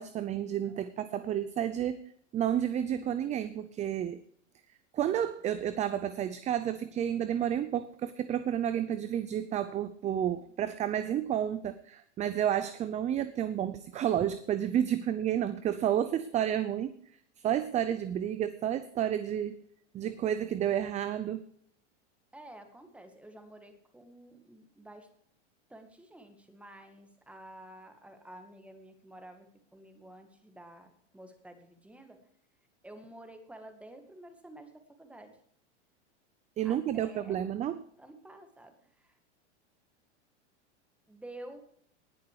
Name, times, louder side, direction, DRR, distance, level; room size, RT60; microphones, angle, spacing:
voice 1, 0.0-2.0 2.3-4.2 4.9-16.9 17.4-19.6 19.9-21.4 36.6-37.8, right 10 dB, 20° right, 13 dB, 0.5 m, -31 dB
voice 2, 22.3-25.1 25.7-32.2 32.8-35.4 36.6-37.5 38.0-39.2 41.1-41.6, right 1 dB, 5° right, 6 dB, 1.9 m, -51 dB
19.5 x 6.7 x 4.8 m, 0.63 s
supercardioid pair, 130°, 35 cm